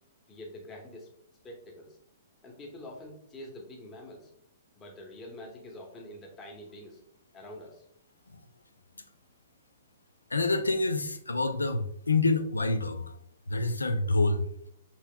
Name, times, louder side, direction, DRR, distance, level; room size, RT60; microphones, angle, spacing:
voice 1, 0.3-1.1 1.4-2.0 2.4-4.3 4.7-7.0 7.3-7.8, left 1 dB, 20° left, 0 dB, 0.9 m, -46 dB
voice 2, 10.3-13.2 13.5-14.5, left 3 dB, 90° left, 9 dB, 0.5 m, -27 dB
5.6 x 3.0 x 2.3 m, 0.70 s
figure-of-eight pair, 115°, 0 cm